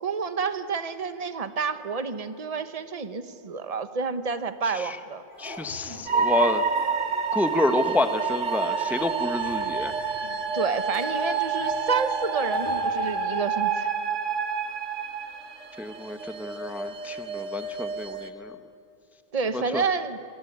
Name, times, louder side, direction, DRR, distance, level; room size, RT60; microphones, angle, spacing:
voice 1, 0.0-5.2 10.5-13.9 19.3-20.2, right 5 dB, 30° right, 10 dB, 1.2 m, -29 dB
sound 1, 5.3-6.0 6.3-13.1, equal, 60° right, 7.9 m, -46 dB
voice 2, 5.4-6.6 7.3-9.9 15.8-18.5 19.7-19.8, left 2 dB, ahead, 9 dB, 1.0 m, -28 dB
sound 2, 6.1-18.3, right 5 dB, 80° right, 1.9 m, -28 dB
27.5 x 23.0 x 9.5 m, 2.7 s
omnidirectional pair, 1.2 m